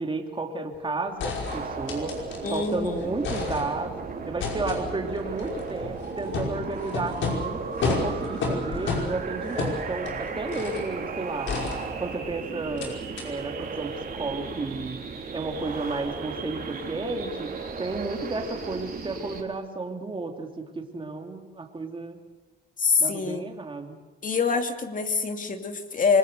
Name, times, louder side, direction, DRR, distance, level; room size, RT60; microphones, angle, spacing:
voice 1, 0.0-2.1 2.5-3.9 4.2-11.5 12.0-15.0 15.3-17.5 17.8-22.2 23.0-24.0, right 3 dB, 25° right, 3 dB, 2.9 m, -32 dB
sound 1, 0.7-0.8 1.2-2.7 3.0-4.0 4.4-10.9 11.5-12.3 12.8-12.9 13.2-13.3, left 4 dB, 70° left, 5.4 m, -32 dB
sound 2, 1.4-19.4, right 5 dB, 50° right, 3.6 m, -36 dB
voice 2, 2.4-3.1 22.8-23.5 24.2-26.2, left 5 dB, 40° left, 5 dB, 2.6 m, -25 dB
26.0 x 20.5 x 6.7 m, 1.3 s
cardioid pair, 90°, 20 cm